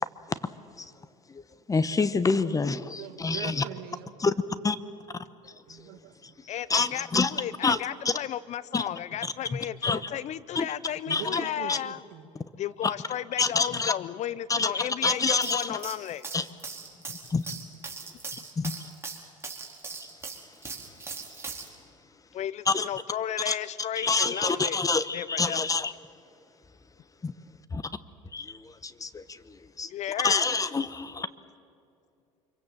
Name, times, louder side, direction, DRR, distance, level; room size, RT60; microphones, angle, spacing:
voice 1, 1.7-3.6 4.2-4.3 4.6-4.8 6.7-7.3 7.6-7.8 8.0-8.1 8.7-8.8 9.5-10.1 10.5-10.7 11.1-11.4 11.7-11.8 13.4-13.9 14.5-15.8 16.3-16.5 17.3-17.6 18.3-18.7 22.7-22.9 23.5-23.6 24.0-25.9 27.2-27.3 27.7-27.8 28.3-29.9 30.2-31.3, left 4 dB, 20° left, 14 dB, 1.0 m, -27 dB
voice 2, 2.4-4.1 5.6-6.1 11.1-12.3, right 10 dB, 60° right, 6 dB, 2.1 m, -42 dB
voice 3, 6.5-12.0 12.6-16.3 17.1-17.2 22.3-24.8 25.1-25.6 29.8-30.5, left 11 dB, 45° left, 18 dB, 0.6 m, -34 dB
sound 1, 15.3-21.7, right 4 dB, 15° right, 4.5 m, -39 dB
25.5 x 23.5 x 7.4 m, 2.6 s
hypercardioid pair, 80°, 17 cm